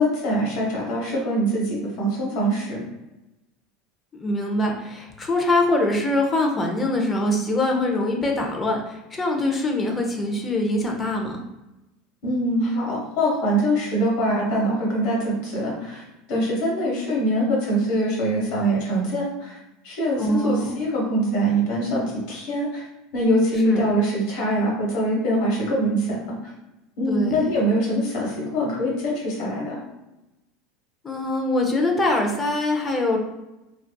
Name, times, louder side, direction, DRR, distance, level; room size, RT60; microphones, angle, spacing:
voice 1, 0.0-2.8 12.2-16.0 16.3-19.6 19.8-22.8 23.1-26.2 27.0-29.8, equal, 65° left, -4 dB, 1.2 m, -23 dB
voice 2, 4.1-11.4 20.2-20.8 23.6-23.9 27.1-27.4 31.0-33.2, left 1 dB, 25° left, 2 dB, 0.6 m, -23 dB
2.5 x 2.3 x 2.2 m, 0.98 s
supercardioid pair, 100°, 0 cm